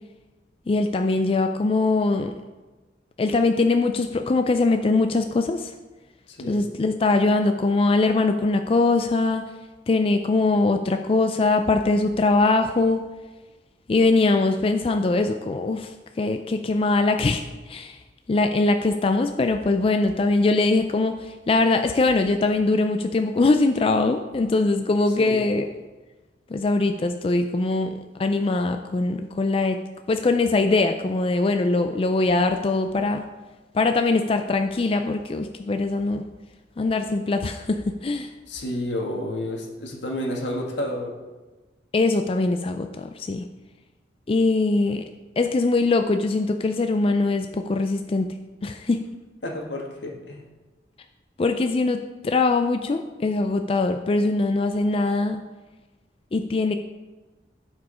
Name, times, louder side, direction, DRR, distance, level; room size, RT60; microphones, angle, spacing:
voice 1, 0.7-2.3 3.2-5.7 6.5-9.5 9.9-13.1 13.9-18.0 18.3-25.7 26.5-29.8 30.1-33.3 33.7-36.2 36.8-38.3 41.9-43.5 44.3-45.0 45.4-48.3 48.6-49.1 51.4-55.4 56.3-56.8, left 3 dB, 30° left, 6 dB, 0.3 m, -22 dB
voice 2, 6.3-6.7 25.2-25.4 38.5-41.1 49.4-50.4, left 1 dB, 85° left, 1 dB, 1.6 m, -30 dB
11.5 x 4.9 x 4.9 m, 1.2 s
head